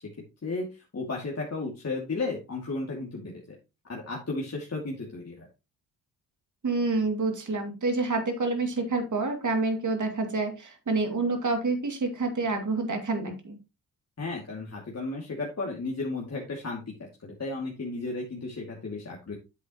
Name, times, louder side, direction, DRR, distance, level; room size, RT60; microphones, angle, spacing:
voice 1, 0.9-3.6 3.9-5.5 14.2-16.8 17.2-19.4, left 3 dB, 35° left, -2 dB, 2.5 m, -34 dB
voice 2, 6.6-13.6, right 3 dB, 40° right, 4 dB, 2.7 m, -28 dB
8.2 x 8.0 x 3.1 m, 0.28 s
hypercardioid pair, 45°, 47 cm